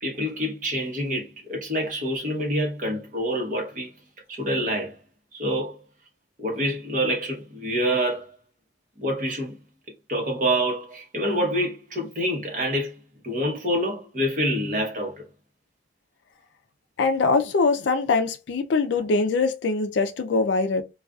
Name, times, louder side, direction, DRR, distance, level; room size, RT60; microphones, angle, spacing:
voice 1, 0.0-3.9 4.3-4.9 5.3-5.8 6.4-8.3 9.0-9.6 10.1-12.9 13.2-15.2, equal, 45° right, 0.9 m, -26 dB
voice 2, 17.0-20.8, left 4 dB, 70° left, 0.4 m, -23 dB
2.4 x 2.3 x 2.3 m
head